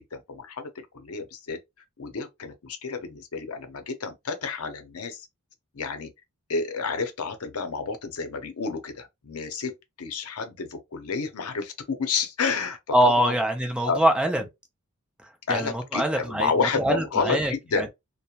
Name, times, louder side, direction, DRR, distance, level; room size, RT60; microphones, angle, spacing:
voice 1, 0.0-1.6 2.0-5.3 5.7-6.1 6.5-13.4 13.9-14.0 15.5-17.9, left 5 dB, 80° left, 0.6 m, -30 dB
voice 2, 12.9-14.4 15.5-17.9, right 1 dB, 5° right, 0.5 m, -24 dB
2.9 x 2.1 x 2.3 m
head